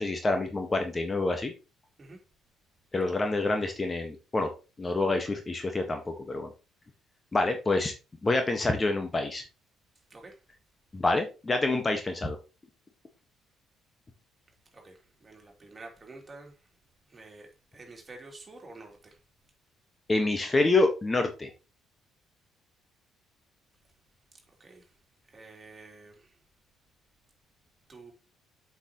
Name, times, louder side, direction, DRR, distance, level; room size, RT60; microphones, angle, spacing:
voice 1, 0.0-1.5 2.9-4.5 4.8-6.5 7.3-7.9 8.2-9.4 10.9-12.4 20.1-21.5, left 2 dB, 25° left, 1.5 m, -27 dB
voice 2, 14.7-16.5 17.1-19.2 24.6-24.8 25.3-26.3 27.9-28.1, right 3 dB, 30° right, 3.1 m, -49 dB
8.1 x 6.1 x 3.0 m
figure-of-eight pair, 45°, 0 cm